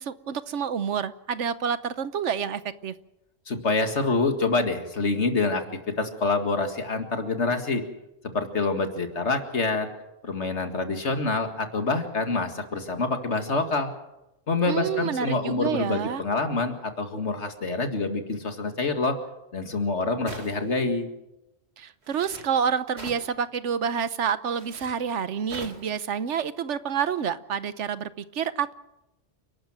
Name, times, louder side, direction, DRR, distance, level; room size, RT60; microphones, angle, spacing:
voice 1, 0.0-2.9 14.7-16.2 21.8-28.7, right 7 dB, 85° right, 14 dB, 1.2 m, -28 dB
voice 2, 3.5-5.6 6.0-7.8 8.3-9.9 10.2-13.9 14.5-19.2 19.5-21.1, left 3 dB, 75° left, 6 dB, 2.3 m, -26 dB
sound 1, 20.3-20.8 22.0-22.5 23.0-23.3 24.5-24.9 25.5-25.9, right 2 dB, 65° right, 2.9 m, -41 dB
29.5 x 12.5 x 7.6 m, 0.93 s
omnidirectional pair, 1.2 m